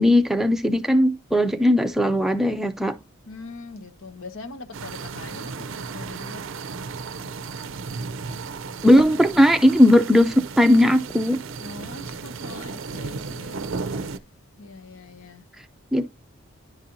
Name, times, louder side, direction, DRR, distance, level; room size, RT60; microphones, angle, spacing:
voice 1, 0.0-3.0 8.8-11.4 15.9-16.3, left 1 dB, ahead, 0.4 m, -18 dB
voice 2, 3.3-6.4 11.6-13.7 14.6-15.4, left 3 dB, 75° left, 1.0 m, -41 dB
sound 1, 4.7-14.2, right 4 dB, 70° right, 0.5 m, -34 dB
10.5 x 4.2 x 2.6 m
head